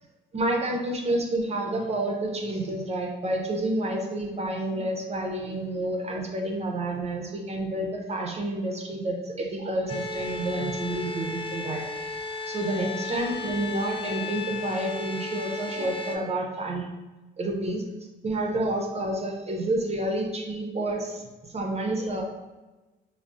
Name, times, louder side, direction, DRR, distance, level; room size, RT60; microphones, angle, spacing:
voice 1, 0.3-11.8 12.5-16.9 17.4-17.8 18.2-22.2, right 1 dB, 35° right, 0 dB, 0.5 m, -29 dB
sound 1, 9.9-16.2, left 3 dB, 25° left, 0.4 m, -34 dB
3.6 x 2.0 x 2.4 m, 1.2 s
cardioid pair, 90°, 20 cm